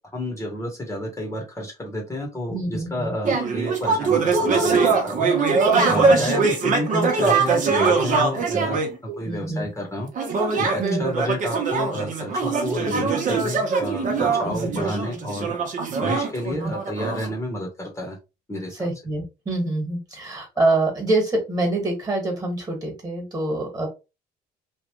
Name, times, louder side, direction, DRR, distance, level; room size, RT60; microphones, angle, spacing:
voice 1, 0.1-5.3 5.9-8.8 9.2-15.5 16.0-18.2 18.5-18.9, left 1 dB, 15° left, 0 dB, 1.1 m, -30 dB
voice 2, 2.5-3.1 5.6-6.3 9.1-9.7 10.8-11.1 14.3-14.9 16.5-16.7 18.7-23.9, right 2 dB, 20° right, 2 dB, 1.6 m, -26 dB
sound 1, 3.2-9.0 10.2-17.3, right 4 dB, 50° right, 1.0 m, -22 dB
3.1 x 2.4 x 3.0 m, 0.27 s
cardioid pair, 110°, 17 cm